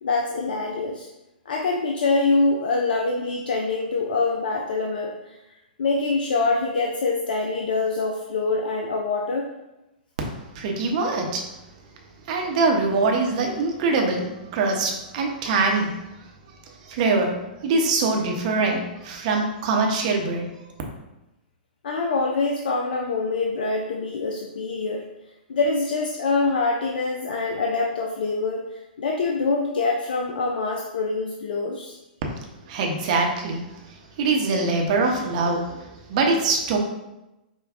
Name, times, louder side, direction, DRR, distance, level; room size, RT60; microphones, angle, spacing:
voice 1, 0.0-1.1 1.5-5.4 5.8-9.5 21.8-25.1 25.5-32.0, left 3 dB, 70° left, 1 dB, 0.4 m, -25 dB
voice 2, 10.5-11.4 12.3-15.9 16.9-17.3 17.6-20.4 32.7-33.6 34.2-36.8, right 3 dB, 50° right, 1 dB, 0.7 m, -23 dB
4.9 x 2.2 x 2.4 m, 0.95 s
hypercardioid pair, 115°, 5 cm